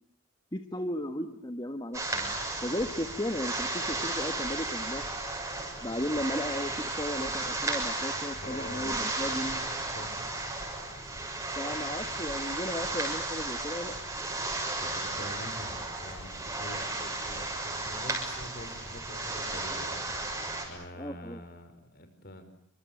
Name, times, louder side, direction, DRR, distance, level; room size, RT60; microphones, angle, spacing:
voice 1, 0.5-2.3 2.6-5.1 5.8-9.6 11.6-14.0 21.0-21.4, left 1 dB, 20° left, 6 dB, 1.5 m, -35 dB
sound 1, 1.9-20.7, right 2 dB, 15° right, 6.9 m, -34 dB
voice 2, 8.4-9.1 9.9-10.1 14.8-20.0 20.6-22.4, left 1 dB, 45° left, 10 dB, 5.1 m, -45 dB
29.0 x 26.0 x 7.9 m, 0.69 s
head